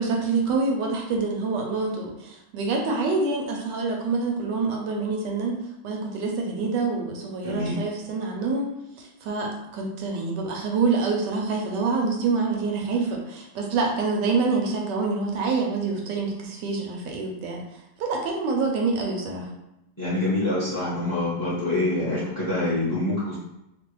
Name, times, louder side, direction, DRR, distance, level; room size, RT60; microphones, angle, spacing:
voice 1, 0.0-5.6 5.8-8.7 9.2-17.6 18.0-19.5, right 4 dB, 75° right, 0 dB, 1.2 m, -26 dB
voice 2, 7.4-7.8 20.0-23.4, left 2 dB, 20° left, -10 dB, 0.6 m, -26 dB
3.0 x 2.4 x 3.1 m, 0.88 s
omnidirectional pair, 2.0 m